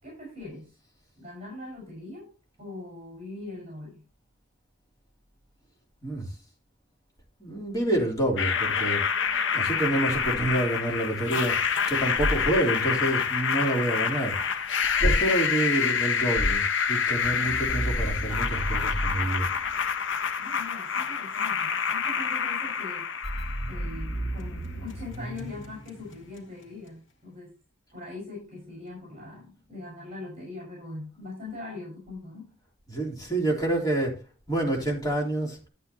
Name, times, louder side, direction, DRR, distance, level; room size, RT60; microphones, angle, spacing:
voice 1, 0.0-0.7 1.2-2.3 2.6-4.0 20.4-23.1 23.7-27.5 27.9-32.5, left 2 dB, 30° right, 5.4 m, -41 dB
voice 2, 7.4-9.1 9.5-14.4 15.0-19.5 32.9-34.2 34.5-35.6, right 1 dB, 20° left, 3.4 m, -27 dB
sound 1, 8.4-24.3, left 6 dB, 70° left, 0.9 m, -27 dB
sound 2, 17.2-20.2 23.2-26.7, right 1 dB, 85° left, 2.2 m, -34 dB
12.5 x 8.7 x 2.9 m
head